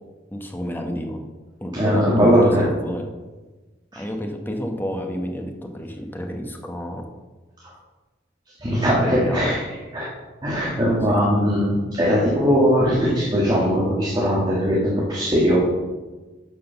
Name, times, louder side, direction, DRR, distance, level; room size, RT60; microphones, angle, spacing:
voice 1, 0.3-1.2 1.6-3.1 3.9-7.1 9.0-9.6 11.1-11.3, equal, 10° left, 3 dB, 1.0 m, -30 dB
voice 2, 1.7-2.7 8.6-9.6 9.9-10.1 10.4-15.6, equal, 25° right, -5 dB, 1.7 m, -19 dB
9.6 x 5.0 x 6.9 m, 1.2 s
head